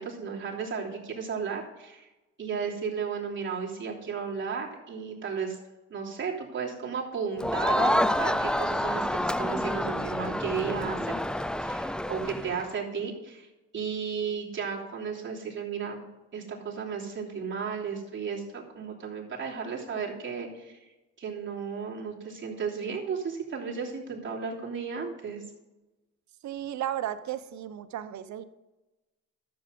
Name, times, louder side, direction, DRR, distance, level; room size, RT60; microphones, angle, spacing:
voice 1, 0.0-2.1 2.4-5.6 5.9-11.1 11.6-13.5 13.7-16.0 16.3-20.9 21.2-25.4, right 6 dB, 40° right, -3 dB, 3.2 m, -34 dB
Crowd, 7.4-12.7, left 1 dB, 5° left, 0.4 m, -28 dB
voice 2, 26.4-28.4, right 11 dB, 70° right, 12 dB, 0.9 m, -34 dB
12.0 x 7.9 x 5.3 m, 1.1 s
cardioid pair, 90°, 30 cm